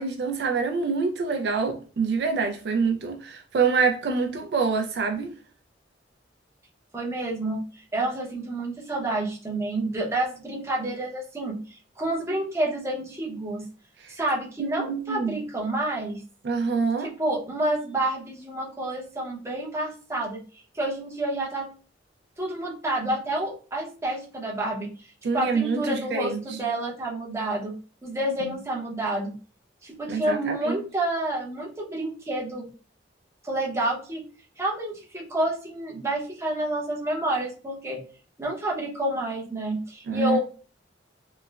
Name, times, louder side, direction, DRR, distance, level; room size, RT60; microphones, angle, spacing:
voice 1, 0.0-5.3 14.0-14.1 14.6-15.4 16.4-17.1 25.2-26.4 28.4-28.6 30.1-30.8 40.1-40.4, right 5 dB, 60° right, 0.3 m, -26 dB
voice 2, 6.9-7.6 7.9-11.6 12.0-13.7 14.1-16.2 17.0-20.4 20.7-21.7 22.4-24.9 25.3-27.7 28.0-29.3 29.8-32.6 33.4-34.2 34.6-38.0 38.4-40.4, right 1 dB, 15° right, 0.6 m, -29 dB
3.1 x 2.0 x 2.2 m
head